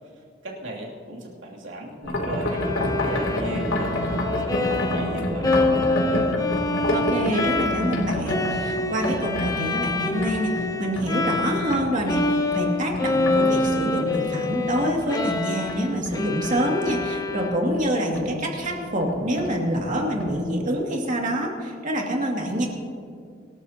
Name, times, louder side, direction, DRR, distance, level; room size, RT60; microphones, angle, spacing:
voice 1, 0.0-4.0 4.4-6.3, right 1 dB, 75° right, -2 dB, 2.7 m, -37 dB
sound 1, 2.0-13.3 13.6-17.0 17.3-17.9 18.1-18.3 18.6-18.7 19.0-19.9 20.2-20.3, left 1 dB, 80° left, 2.9 m, -28 dB
Bowed string instrument, 2.4-11.8 12.1-17.9, left 3 dB, 20° left, 0.7 m, -26 dB
voice 2, 6.9-22.7, equal, 40° right, 0 dB, 2.3 m, -26 dB
24.5 x 13.5 x 2.9 m, 2.3 s
head